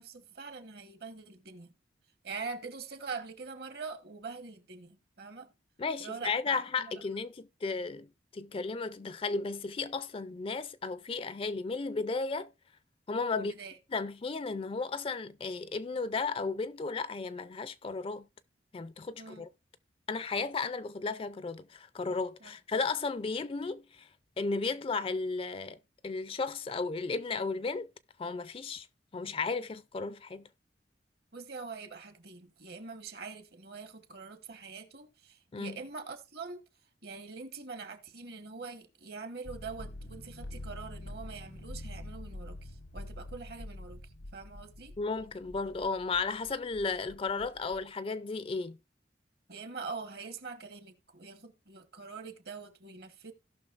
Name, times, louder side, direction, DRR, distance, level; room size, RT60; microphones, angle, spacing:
voice 1, 0.0-1.7 2.2-5.5 6.0-6.9 13.3-13.8 19.2-19.5 22.4-22.5 31.3-36.6 37.0-45.0 49.5-53.3, right 4 dB, 60° right, 1.2 m, -44 dB
voice 2, 5.8-12.5 13.1-13.5 13.9-18.3 18.7-19.5 20.1-24.1 24.4-25.8 26.0-27.9 28.2-28.9 29.1-30.5 35.5-35.8 45.0-48.8, left 4 dB, 30° left, 0.4 m, -34 dB
sound 1, 39.4-47.8, left 1 dB, 90° left, 1.3 m, -46 dB
17.0 x 5.9 x 2.5 m
head